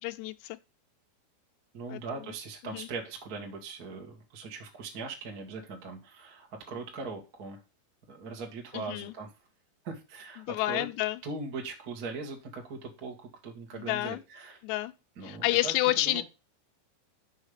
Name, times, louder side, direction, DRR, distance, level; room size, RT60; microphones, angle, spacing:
voice 1, 0.0-0.6 1.9-2.3 2.7-2.9 8.7-9.1 10.4-11.2 13.7-14.2 14.6-14.9 15.2-16.2, left 17 dB, 85° left, 2.7 m, -30 dB
voice 2, 1.7-7.6 8.1-9.3 9.8-10.8 11.2-14.6 15.2-16.2, right 4 dB, 70° right, 0.8 m, -40 dB
6.4 x 5.6 x 5.0 m
omnidirectional pair, 5.0 m